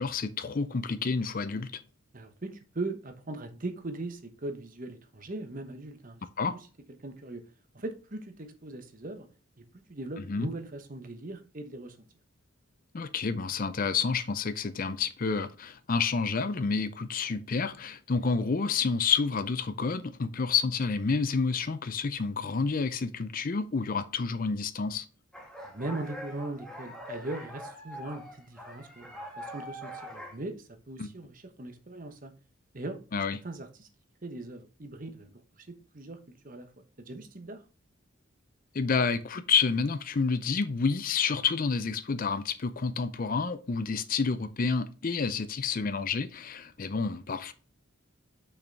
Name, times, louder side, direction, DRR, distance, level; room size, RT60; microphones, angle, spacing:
voice 1, 0.0-1.8 6.4-6.5 10.3-10.5 12.9-25.1 31.0-31.1 33.1-33.4 38.7-47.5, left 5 dB, 40° left, 0.5 m, -29 dB
voice 2, 2.1-6.2 7.0-7.4 7.7-9.3 9.7-12.0 25.6-32.3 32.7-33.0 33.4-33.9 34.2-36.2 36.4-36.7 37.0-37.6, right 2 dB, 40° right, 1.0 m, -39 dB
sound 1, 25.3-30.3, equal, 5° left, 1.4 m, -43 dB
6.4 x 5.8 x 3.5 m
head